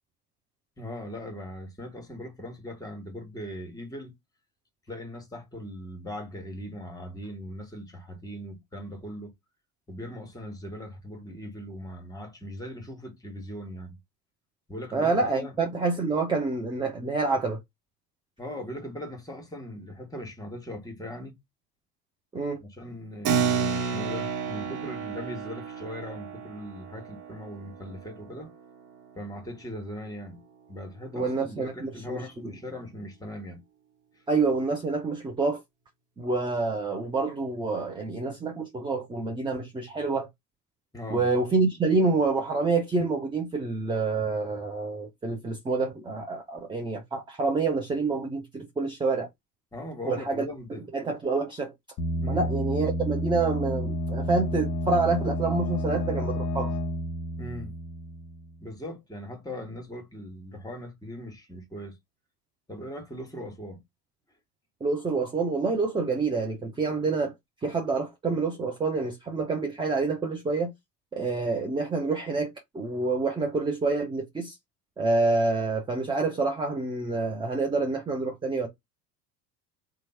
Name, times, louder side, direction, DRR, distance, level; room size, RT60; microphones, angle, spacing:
voice 1, 0.8-4.1 4.9-9.3 9.9-14.0 14.7-15.6 18.4-21.4 22.6-28.5 29.1-33.6 40.9-41.3 49.7-50.8 52.2-52.5 57.4-57.7 58.6-61.9 62.7-63.8, equal, 5° left, 1.4 m, -39 dB
voice 2, 14.9-17.6 22.3-22.6 31.1-32.5 34.3-35.6 36.2-40.3 41.1-49.3 50.0-50.4 50.9-51.7 52.3-56.7 64.8-67.3 67.6-70.7 71.1-74.6 75.0-78.7, right 3 dB, 10° right, 0.6 m, -27 dB
Keyboard (musical), 23.2-29.3, right 6 dB, 50° right, 1.1 m, -31 dB
sound 1, 52.0-58.6, equal, 35° left, 1.0 m, -30 dB
3.0 x 2.4 x 4.2 m
figure-of-eight pair, 75°, 48 cm